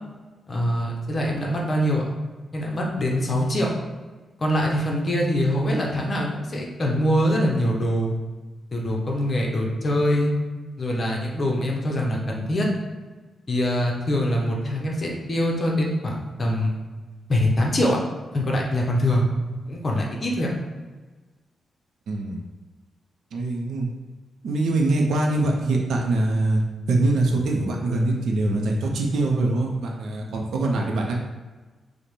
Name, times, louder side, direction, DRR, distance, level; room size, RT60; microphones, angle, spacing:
voice 1, 0.5-2.1 2.5-3.7 4.4-8.2 8.7-10.3 10.8-12.7 13.5-16.8 17.3-18.0 18.3-19.2 19.7-20.5, equal, 30° left, -1 dB, 0.6 m, -23 dB
voice 2, 22.1-22.4 23.3-23.9 24.4-26.6 26.9-31.1, right 2 dB, 80° right, 0 dB, 0.5 m, -23 dB
5.1 x 2.1 x 3.1 m, 1.3 s
wide cardioid pair, 140°, 0 cm